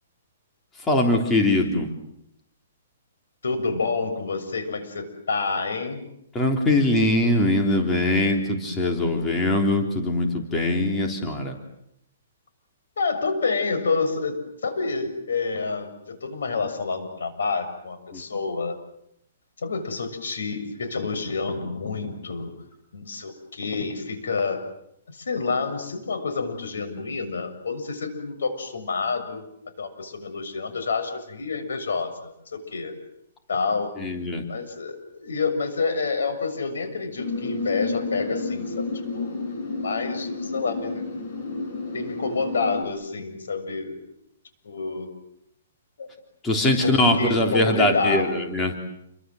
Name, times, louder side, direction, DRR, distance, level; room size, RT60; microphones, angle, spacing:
voice 1, 0.9-1.9 6.3-11.6 18.1-18.2 34.0-34.4 46.4-48.7, left 1 dB, 10° left, 2 dB, 3.5 m, -22 dB
voice 2, 3.4-6.0 13.0-18.8 19.6-22.5 22.9-24.6 25.1-29.5 29.8-33.0 33.5-33.9 34.5-41.0 41.9-44.0 44.6-45.1 46.0-46.1 46.8-48.3, left 4 dB, 90° left, 9 dB, 7.0 m, -28 dB
sound 1, 37.2-42.8, left 3 dB, 40° left, 7.2 m, -30 dB
29.5 x 24.0 x 7.9 m, 0.76 s
hypercardioid pair, 165°, 0 cm